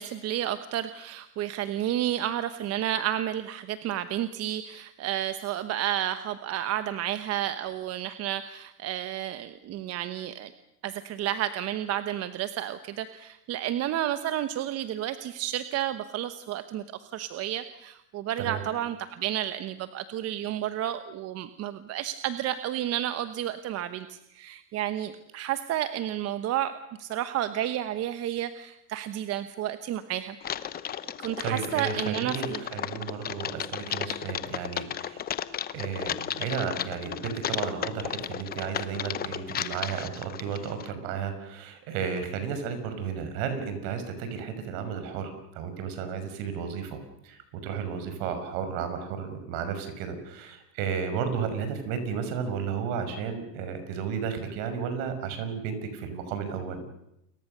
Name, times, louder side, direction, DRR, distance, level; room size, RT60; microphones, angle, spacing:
voice 1, 0.0-10.5 10.8-30.4 31.2-32.6, right 11 dB, 30° right, 11 dB, 1.1 m, -31 dB
Typing, 30.4-40.9, left 9 dB, 20° left, 0.9 m, -34 dB
voice 2, 31.4-35.2 35.7-56.8, right 6 dB, 55° right, 9 dB, 6.0 m, -33 dB
29.5 x 23.0 x 6.8 m, 0.82 s
supercardioid pair, 135°, 48 cm